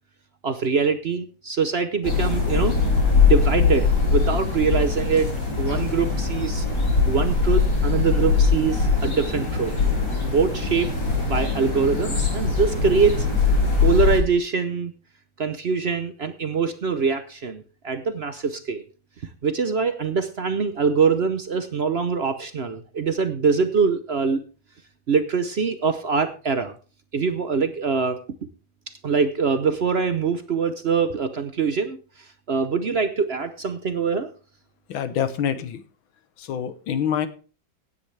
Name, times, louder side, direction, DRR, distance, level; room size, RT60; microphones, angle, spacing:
voice 1, 0.4-2.8 3.2-6.7 7.1-9.7 10.2-10.9 11.2-13.3 13.8-14.9 15.4-18.8 19.4-24.4 25.1-26.7 27.1-28.2 29.0-32.0 32.5-34.3, right 5 dB, 60° right, 10 dB, 0.6 m, -23 dB
sound 1, 2.0-14.2, left 4 dB, 55° left, 4.4 m, -21 dB
voice 2, 34.9-35.8 36.4-37.3, left 8 dB, 85° left, 12 dB, 1.8 m, -26 dB
16.5 x 9.8 x 3.4 m, 0.36 s
omnidirectional pair, 2.1 m